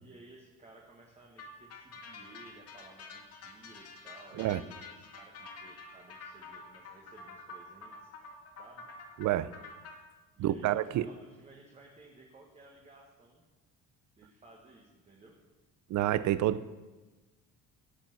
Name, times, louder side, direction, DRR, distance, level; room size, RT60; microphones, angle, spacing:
voice 1, 0.0-8.1 8.6-8.9 10.3-13.4 14.2-15.4, right 2 dB, 20° right, -2 dB, 1.5 m, -56 dB
sound 1, 1.4-9.9, left 3 dB, 45° left, 1.8 m, -48 dB
voice 2, 9.2-9.5 10.4-11.1 15.9-16.7, right 13 dB, 60° right, 16 dB, 0.6 m, -28 dB
16.5 x 7.3 x 6.0 m, 1.2 s
cardioid pair, 165°, 33 cm